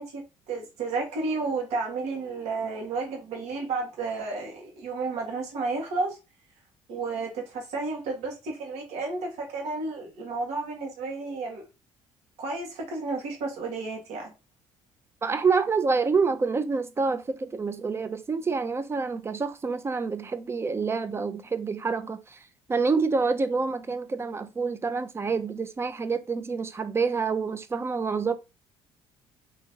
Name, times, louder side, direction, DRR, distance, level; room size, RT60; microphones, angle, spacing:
voice 1, 0.0-6.2 6.9-11.7 12.4-14.3, right 3 dB, 75° right, 1.6 m, -32 dB
voice 2, 15.2-22.4 22.7-28.3, right 4 dB, 20° right, 0.5 m, -27 dB
3.6 x 3.0 x 2.8 m
cardioid pair, 105°, 11 cm